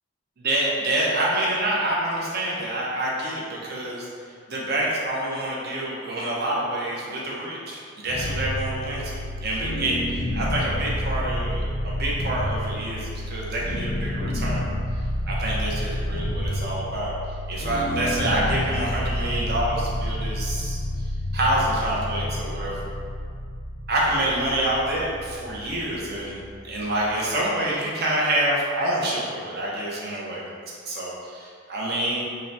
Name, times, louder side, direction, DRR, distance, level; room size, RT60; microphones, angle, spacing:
voice 1, 0.4-4.1 4.5-14.6 15.2-17.1 17.5-20.8 21.3-22.9 23.9-26.4 26.6-30.5 30.9-32.2, right 1 dB, 50° right, -5 dB, 0.7 m, -27 dB
sound 1, 8.1-27.1, left 1 dB, 70° left, 0.5 m, -29 dB
3.7 x 2.1 x 4.1 m, 2.2 s
head